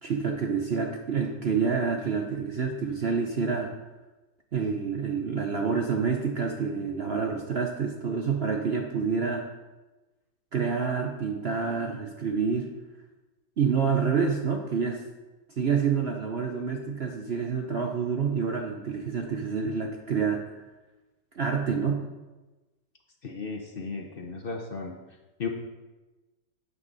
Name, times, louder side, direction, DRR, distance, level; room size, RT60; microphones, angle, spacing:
voice 1, 0.0-3.7 4.5-9.4 10.5-12.7 13.6-15.0 15.6-20.4 21.3-22.1, right 5 dB, 65° right, 2 dB, 0.6 m, -28 dB
voice 2, 23.2-24.9 25.4-25.5, left 4 dB, 55° left, 3 dB, 0.6 m, -35 dB
9.4 x 8.2 x 4.0 m, 1.1 s
omnidirectional pair, 2.1 m